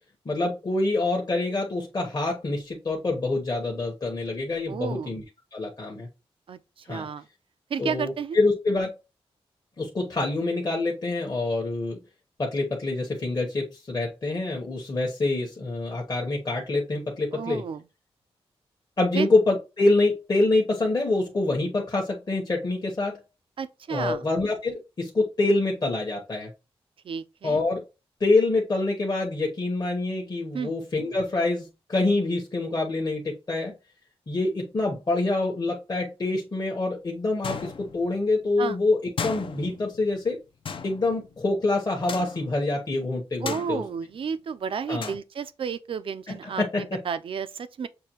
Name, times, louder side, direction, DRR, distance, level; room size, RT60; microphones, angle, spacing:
voice 1, 0.2-5.2 5.5-6.1 6.9-7.1 7.8-8.9 9.8-12.0 12.4-17.6 19.0-23.2 23.9-26.5 27.4-27.8 28.2-33.7 34.3-40.4 40.8-43.8 44.9-45.1 46.3-47.0, left 2 dB, 40° left, 1.0 m, -26 dB
voice 2, 4.7-5.1 6.5-6.6 6.9-7.2 7.7-8.4 17.3-17.8 19.1-19.3 23.6-24.2 27.0-27.6 30.5-30.7 38.6-38.8 43.4-47.9, right 6 dB, 60° right, 0.4 m, -32 dB
sound 1, 37.4-38.3 39.2-40.2 40.7-41.6 42.1-42.7 43.5-44.3 45.0-45.2, left 5 dB, 60° left, 0.6 m, -36 dB
6.6 x 2.2 x 2.9 m
wide cardioid pair, 90°, 10 cm